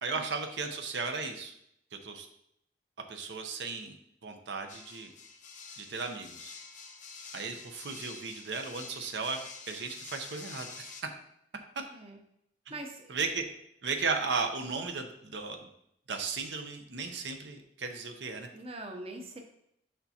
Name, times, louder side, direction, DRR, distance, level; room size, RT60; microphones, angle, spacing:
voice 1, 0.0-1.5 1.9-2.3 3.1-4.0 4.2-5.1 5.8-6.5 7.3-9.4 9.7-10.9 12.7-12.8 13.1-13.4 13.8-15.7 16.1-18.5, right 4 dB, 70° right, 5 dB, 0.7 m, -35 dB
sound 1, 4.7-11.0, left 5 dB, 45° left, 0.6 m, -47 dB
voice 2, 12.7-13.2 18.5-19.4, right 2 dB, 35° right, 3 dB, 0.7 m, -42 dB
6.6 x 5.7 x 2.8 m, 0.73 s
head